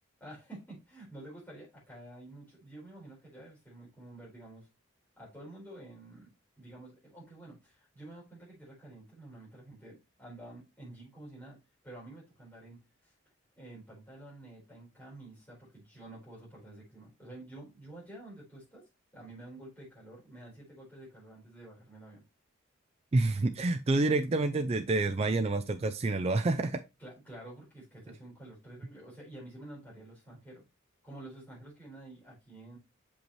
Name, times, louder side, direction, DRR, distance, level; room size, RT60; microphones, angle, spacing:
voice 1, 0.2-4.7 5.2-6.3 6.6-11.6 11.8-13.1 13.6-22.2 27.0-30.6 31.0-32.8, right 1 dB, 10° left, -7 dB, 4.3 m, -49 dB
voice 2, 23.1-26.8, right 2 dB, 30° right, 8 dB, 0.3 m, -28 dB
6.9 x 5.2 x 3.1 m, 0.25 s
head